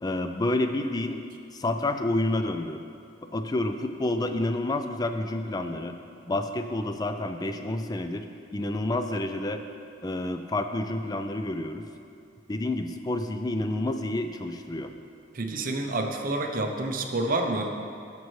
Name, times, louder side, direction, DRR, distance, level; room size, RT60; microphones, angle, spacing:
voice 1, 0.0-1.2 1.5-2.8 3.3-6.0 6.3-8.3 8.5-9.6 10.0-11.9 12.5-14.9, left 2 dB, 20° left, 7 dB, 0.3 m, -29 dB
voice 2, 15.3-17.7, right 2 dB, 45° right, 4 dB, 0.6 m, -28 dB
14.0 x 5.3 x 3.2 m, 2.4 s
head